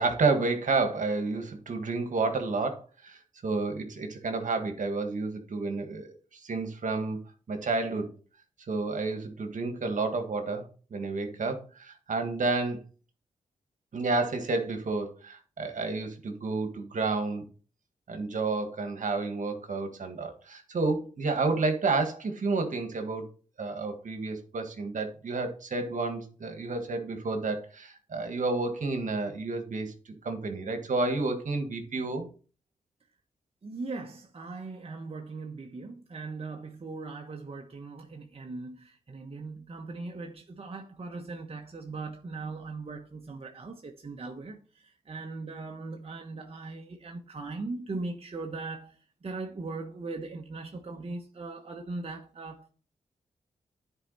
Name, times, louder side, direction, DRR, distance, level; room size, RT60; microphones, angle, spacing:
voice 1, 0.0-7.2 7.5-8.1 8.7-12.8 13.9-17.4 18.1-23.3 23.6-29.9 30.2-32.3, right 3 dB, 65° right, 1.7 m, -30 dB
voice 2, 33.6-52.7, right 3 dB, 45° right, 1.2 m, -39 dB
10.0 x 4.7 x 4.1 m
cardioid pair, 55°, 14 cm